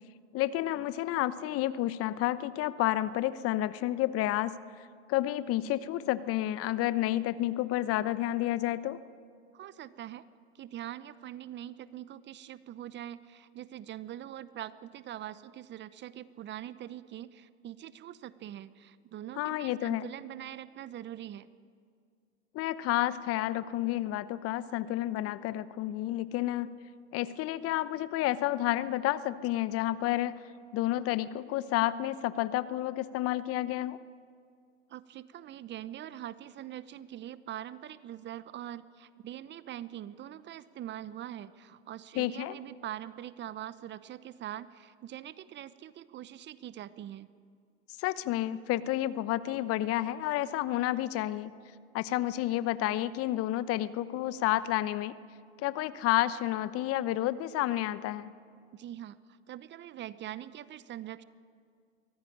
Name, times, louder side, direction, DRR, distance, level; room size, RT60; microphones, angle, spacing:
voice 1, 0.3-9.0 19.4-20.1 22.5-26.7 27.1-30.3 30.7-34.0 42.1-42.6 48.0-51.5 51.9-55.1 55.6-58.3, left 14 dB, 40° left, 15 dB, 1.0 m, -30 dB
voice 2, 9.5-10.2 10.5-21.5 34.9-47.3 58.7-59.2 59.5-61.2, right 12 dB, 30° right, 16 dB, 0.9 m, -43 dB
23.5 x 16.5 x 9.9 m, 2.2 s
hypercardioid pair, 95°, 35 cm